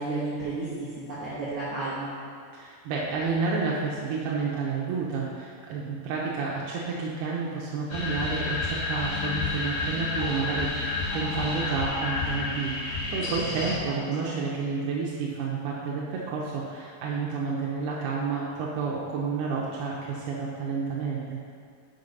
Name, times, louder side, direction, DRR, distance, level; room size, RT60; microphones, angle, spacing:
voice 1, 0.0-2.1 13.8-14.5, right 2 dB, 60° right, -9 dB, 1.7 m, -33 dB
voice 2, 2.5-21.4, right 4 dB, 85° right, -4 dB, 2.8 m, -30 dB
sound 1, 7.9-13.8, left 3 dB, 75° left, 3.2 m, -30 dB
6.5 x 5.8 x 5.4 m, 2.2 s
omnidirectional pair, 4.4 m